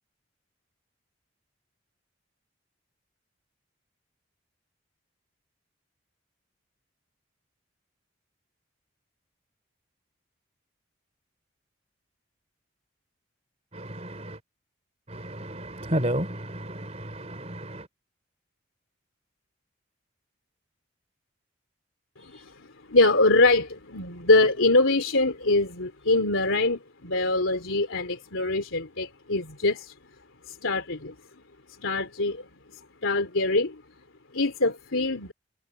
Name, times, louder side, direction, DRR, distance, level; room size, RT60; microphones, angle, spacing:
voice 1, 13.7-14.4 15.1-17.9, right 1 dB, 35° right, 3.8 m, -32 dB
voice 2, 22.2-29.9 30.5-31.1 31.8-32.4 33.0-33.8 34.3-35.3, left 2 dB, 85° left, 3.2 m, -24 dB
head